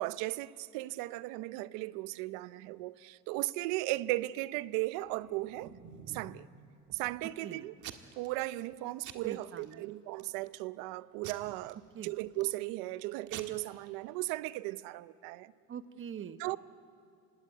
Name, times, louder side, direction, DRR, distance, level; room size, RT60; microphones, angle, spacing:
voice 1, 0.0-5.7 6.1-6.5 6.9-7.7 8.2-11.8 12.0-15.5 16.4-16.6, right 18 dB, 90° right, 0.7 m, -36 dB
Packing tape duct tape / Tearing, 5.0-6.4 6.9-7.4 7.8-8.3 8.6-8.8 9.0-9.7 10.2-10.6 11.2-12.5 13.0-13.1 13.3-13.4, right 10 dB, 65° right, 1.7 m, -48 dB
voice 2, 9.2-9.8 11.9-12.1 15.7-16.4, right 8 dB, 40° right, 1.2 m, -43 dB
25.0 x 18.0 x 9.5 m
cardioid pair, 115°, 33 cm